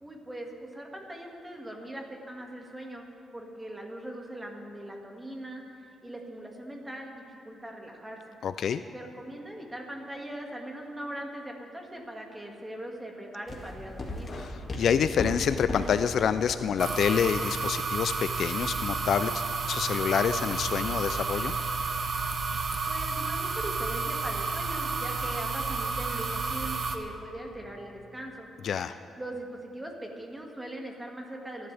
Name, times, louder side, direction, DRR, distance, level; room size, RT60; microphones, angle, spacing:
voice 1, 0.0-3.0 3.3-5.6 6.0-8.2 8.9-14.3 22.9-28.5 29.2-31.7, right 1 dB, 10° right, 1 dB, 2.1 m, -40 dB
voice 2, 8.4-8.8 14.4-19.4 19.7-21.5 28.6-28.9, left 7 dB, 60° left, 12 dB, 0.4 m, -27 dB
sound 1, 13.5-24.1, left 1 dB, 35° left, 2.2 m, -41 dB
sound 2, 16.8-27.0, right 4 dB, 45° right, 1.0 m, -31 dB
26.0 x 11.5 x 3.5 m, 2.7 s
cardioid pair, 115°, 0 cm